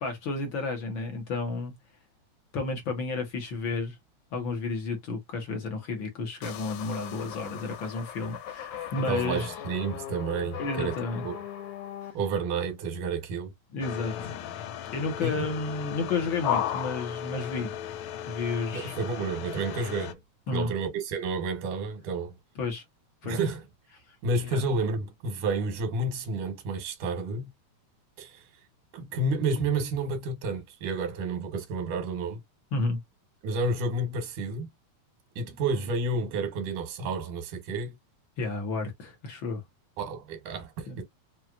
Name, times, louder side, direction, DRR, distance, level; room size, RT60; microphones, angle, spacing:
voice 1, 0.0-1.7 2.5-4.0 4.3-9.5 10.6-11.2 12.0-12.1 13.7-14.3 14.9-17.7 18.3-19.3 20.5-20.7 22.6-22.8 23.2-23.4 24.5-24.6 32.7-33.0 38.4-39.6 40.9-41.0, left 3 dB, 55° left, 1.5 m, -32 dB
sound 1, 6.4-12.1, left 10 dB, 90° left, 2.3 m, -39 dB
voice 2, 9.0-11.0 11.2-11.4 12.1-13.5 15.2-15.4 18.7-20.2 20.5-22.3 23.2-23.6 24.2-27.5 28.2-28.4 28.9-32.4 33.4-34.7 35.4-37.9 40.0-41.0, right 3 dB, 90° right, 2.7 m, -30 dB
sound 2, 13.8-20.1, left 10 dB, 75° left, 1.9 m, -35 dB
5.9 x 2.6 x 2.4 m
omnidirectional pair, 3.4 m